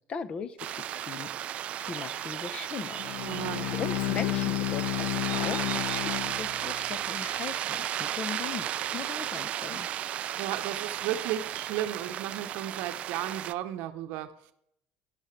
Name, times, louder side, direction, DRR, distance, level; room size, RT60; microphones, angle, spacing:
voice 1, 0.1-0.6 0.9-1.3 1.8-3.0 3.3-9.9, left 6 dB, 30° left, 14 dB, 0.7 m, -39 dB
sound 1, 0.6-13.5, right 11 dB, 40° right, 0.3 m, -34 dB
Bowed string instrument, 2.9-7.0, left 18 dB, 65° left, 0.5 m, -32 dB
voice 2, 3.2-3.7 10.4-14.5, right 12 dB, 70° right, 8 dB, 0.8 m, -34 dB
12.5 x 10.5 x 3.2 m, 0.75 s
cardioid pair, 155°, 3 cm